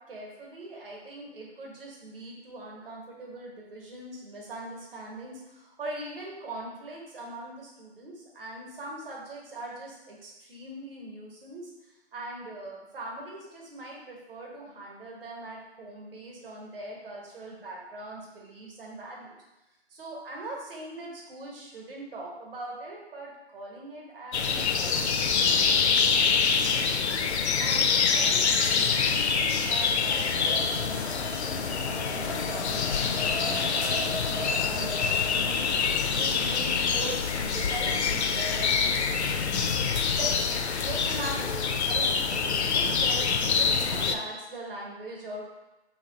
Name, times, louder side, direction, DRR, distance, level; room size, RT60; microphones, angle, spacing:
voice 1, 0.1-11.7 12.1-19.4 19.9-27.0 27.6-39.8 40.1-40.6 40.8-45.5, right 2 dB, 55° right, -2 dB, 1.2 m, -41 dB
sound 1, 24.3-44.2, left 5 dB, 75° left, 0.5 m, -26 dB
Race car auto racing, 28.9-39.5, equal, 20° left, 0.4 m, -41 dB
3.1 x 2.9 x 3.8 m, 1.0 s
figure-of-eight pair, 145°, 33 cm